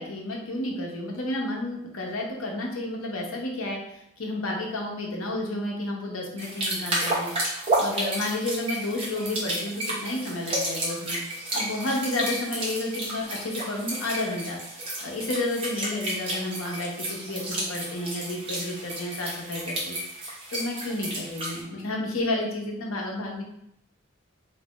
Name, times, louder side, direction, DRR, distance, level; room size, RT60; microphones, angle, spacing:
voice 1, 0.0-7.3 7.8-11.2 11.5-14.6 15.0-19.9 20.5-23.4, left 1 dB, 90° left, 0 dB, 0.8 m, -31 dB
sound 1, 6.4-21.6, right 1 dB, 25° right, 0.8 m, -31 dB
3.2 x 2.6 x 3.0 m, 0.77 s
head